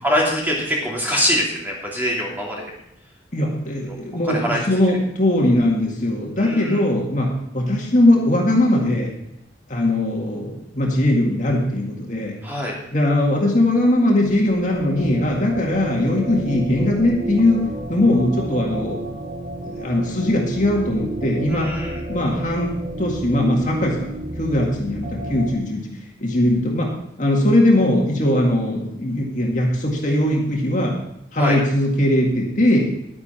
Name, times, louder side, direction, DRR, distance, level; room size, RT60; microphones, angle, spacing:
voice 1, 0.0-2.7 3.9-4.0 4.2-4.6 6.4-6.8 12.4-12.8 21.5-22.0 31.4-31.6, equal, 10° right, -3 dB, 2.9 m, -23 dB
voice 2, 3.3-9.1 9.7-12.4 12.9-19.0 19.6-21.7 22.1-24.1 24.4-25.9 26.2-26.9 27.2-31.0 31.3-32.9, left 1 dB, 45° left, -1 dB, 2.0 m, -20 dB
sound 1, 14.0-25.6, right 1 dB, 40° right, 1.3 m, -31 dB
11.0 x 10.0 x 4.4 m, 0.80 s
head